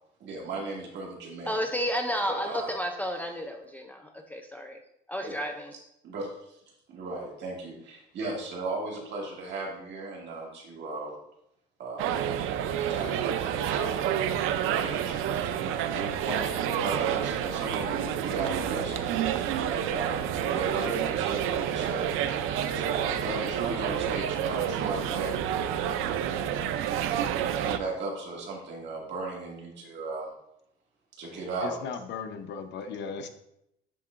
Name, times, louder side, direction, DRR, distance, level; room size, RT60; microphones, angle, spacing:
voice 1, 0.2-1.6 2.4-2.7 5.2-5.3 6.0-6.6 6.9-11.1 11.8-12.1 12.9-14.0 14.5-19.0 19.7-22.1 22.7-25.4 27.4-30.3 31.2-31.7, right 3 dB, 60° right, -2 dB, 1.9 m, -36 dB
voice 2, 1.5-4.8 5.1-5.7, equal, 10° left, 3 dB, 0.4 m, -32 dB
sound 1, 12.0-27.8, right 9 dB, 80° right, 0.5 m, -29 dB
voice 3, 31.6-33.3, left 5 dB, 60° left, 8 dB, 0.7 m, -37 dB
10.0 x 3.7 x 2.5 m, 0.79 s
cardioid pair, 130°, 21 cm